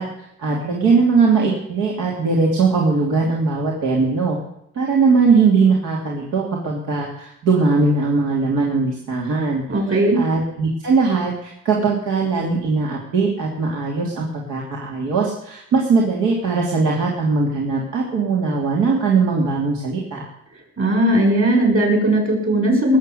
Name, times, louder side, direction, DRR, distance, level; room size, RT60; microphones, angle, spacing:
voice 1, 0.0-4.4 4.7-20.3, right 4 dB, 85° right, -2 dB, 2.9 m, -20 dB
voice 2, 9.7-10.2 20.8-23.0, right 1 dB, 45° right, 3 dB, 6.2 m, -17 dB
19.5 x 7.6 x 7.8 m, 0.77 s
cardioid pair, 90°, 30 cm